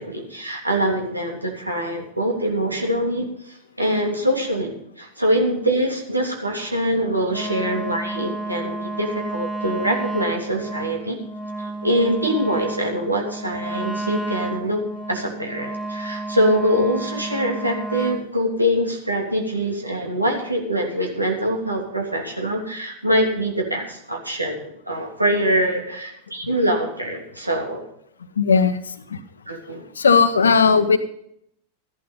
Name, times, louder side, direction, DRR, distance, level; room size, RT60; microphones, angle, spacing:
voice 1, 0.0-11.2 11.6-14.8 15.1-27.8 29.5-29.8, equal, 85° right, 1 dB, 3.0 m, -24 dB
Wind instrument woodwind instrument, 7.3-18.3, right 2 dB, 20° left, 0.8 m, -31 dB
voice 2, 28.4-29.2 29.8-31.0, left 5 dB, 70° left, 11 dB, 1.2 m, -17 dB
14.0 x 11.0 x 5.4 m, 0.71 s
figure-of-eight pair, 90°, 0 cm